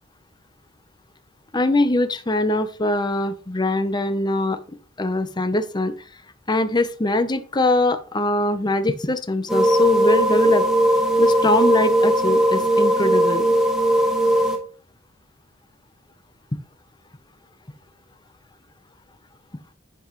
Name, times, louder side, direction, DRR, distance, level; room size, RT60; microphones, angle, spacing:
voice 1, 1.5-4.6 5.0-5.9 6.5-10.7 11.2-13.5, left 2 dB, 20° left, 10 dB, 0.8 m, -22 dB
sound 1, 9.5-14.6, right 1 dB, 5° right, 1.4 m, -18 dB
10.5 x 5.3 x 3.1 m, 0.39 s
head